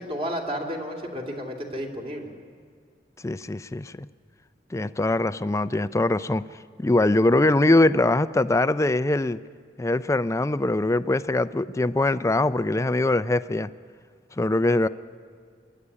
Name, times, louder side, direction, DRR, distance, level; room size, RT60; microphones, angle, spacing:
voice 1, 0.0-2.3, equal, 35° right, 1 dB, 2.6 m, -32 dB
voice 2, 3.2-4.1 4.7-6.4 6.8-9.4 9.8-13.7 14.4-14.9, left 2 dB, 15° left, 14 dB, 0.4 m, -22 dB
26.0 x 11.5 x 9.8 m, 2.1 s
head